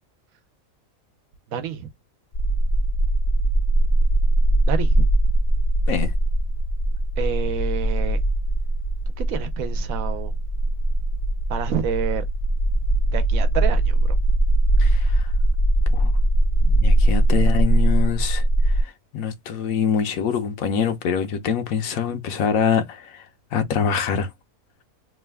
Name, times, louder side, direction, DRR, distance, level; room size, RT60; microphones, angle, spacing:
voice 1, 1.5-1.9 4.6-5.1 7.2-8.2 9.1-10.3 11.5-12.2 13.1-14.1 16.7-16.9, right 8 dB, 75° right, 1.1 m, -28 dB
sound 1, 2.3-18.8, right 1 dB, 55° left, 0.5 m, -20 dB
voice 2, 14.8-15.3 15.9-16.1 16.8-24.3, left 7 dB, 80° left, 1.1 m, -25 dB
3.2 x 2.2 x 3.3 m
omnidirectional pair, 1.5 m